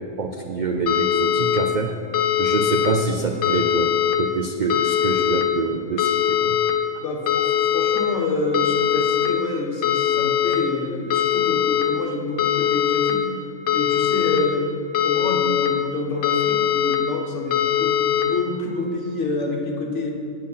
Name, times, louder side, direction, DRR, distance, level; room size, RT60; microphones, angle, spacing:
voice 1, 0.0-1.9 2.4-6.6, right 3 dB, 60° right, 3 dB, 0.5 m, -26 dB
sound 1, 0.9-1.6 2.1-2.9 3.4-4.1 4.7-5.4 6.0-6.7 7.3-8.0 8.5-9.3 9.8-10.6 11.1-11.8 12.4-13.1 13.7-14.4 14.9-15.7 16.2-17.0 17.5-18.2, left 10 dB, 90° left, 1.2 m, -21 dB
voice 2, 7.0-13.3 13.7-14.7 15.0-20.1, left 3 dB, 60° left, 1 dB, 1.4 m, -27 dB
8.8 x 8.5 x 5.6 m, 2.6 s
omnidirectional pair, 1.4 m